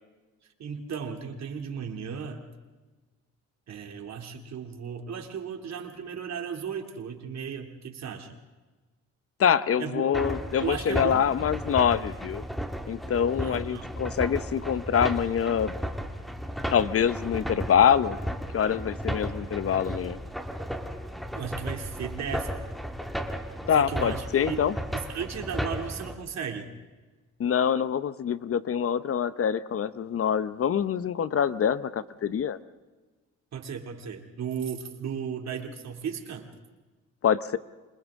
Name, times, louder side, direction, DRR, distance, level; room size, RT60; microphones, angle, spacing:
voice 1, 0.6-2.4 3.7-8.3 9.8-10.1 10.6-11.3 13.4-13.9 21.3-22.5 23.7-24.6 24.9-26.7 33.5-36.5, right 7 dB, 60° right, 4 dB, 2.7 m, -35 dB
voice 2, 9.4-12.4 12.9-15.7 16.7-18.2 18.5-20.2 23.7-24.7 27.4-32.6 37.2-37.6, left 8 dB, 50° left, 15 dB, 0.8 m, -25 dB
sound 1, 10.1-26.2, equal, ahead, 2.0 m, -34 dB
28.5 x 26.0 x 3.7 m, 1.2 s
cardioid pair, 90°, 30 cm